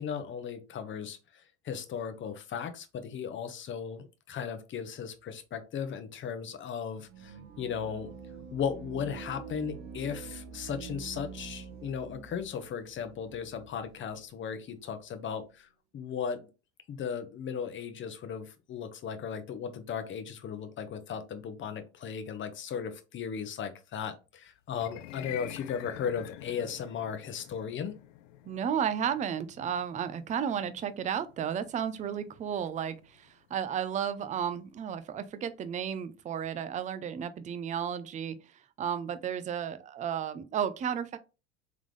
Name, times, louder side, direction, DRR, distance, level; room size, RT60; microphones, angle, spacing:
voice 1, 0.0-8.1 8.5-15.7 15.9-16.5 16.9-27.9, left 7 dB, 30° left, 0.8 m, -36 dB
sound 1, 7.1-14.2, right 6 dB, 60° right, 1.1 m, -46 dB
sound 2, 24.7-35.0, left 14 dB, 65° left, 0.5 m, -49 dB
voice 2, 28.5-38.4 38.8-41.2, right 8 dB, 20° right, 0.4 m, -33 dB
3.6 x 3.6 x 3.2 m
hypercardioid pair, 80°, 41 cm